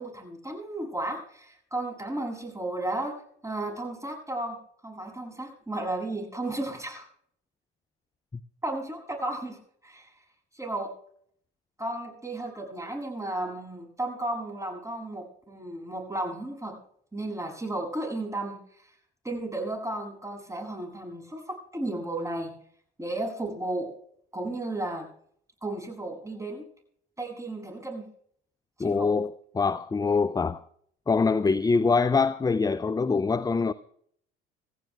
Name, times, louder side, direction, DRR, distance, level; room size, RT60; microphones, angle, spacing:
voice 1, 0.0-3.2 3.4-4.6 4.8-7.1 8.6-10.1 10.5-10.9 11.8-16.7 17.1-18.9 19.2-22.5 23.0-23.9 24.3-25.1 25.6-26.6 27.2-28.1 28.8-29.2, right 2 dB, 10° right, 7.4 m, -34 dB
voice 2, 28.8-30.6 31.1-33.7, left 4 dB, 15° left, 0.5 m, -24 dB
27.5 x 14.5 x 2.3 m
hypercardioid pair, 65°, 30 cm